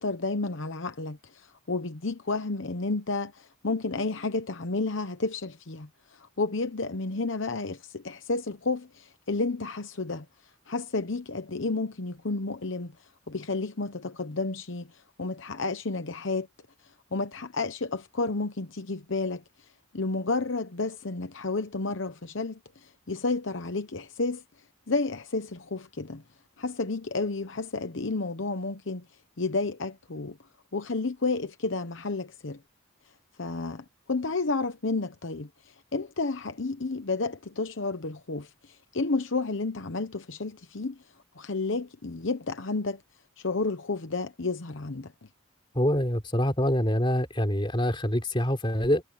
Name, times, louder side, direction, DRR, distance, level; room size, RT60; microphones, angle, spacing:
voice 1, 0.0-10.2 10.7-12.9 13.3-16.5 17.1-19.4 19.9-24.4 24.9-26.2 26.6-29.0 29.4-30.4 30.7-32.6 33.4-41.0 41.4-43.0 43.4-45.1, left 3 dB, 65° left, 1.0 m, -31 dB
voice 2, 45.7-49.0, equal, 25° left, 3.7 m, -25 dB
head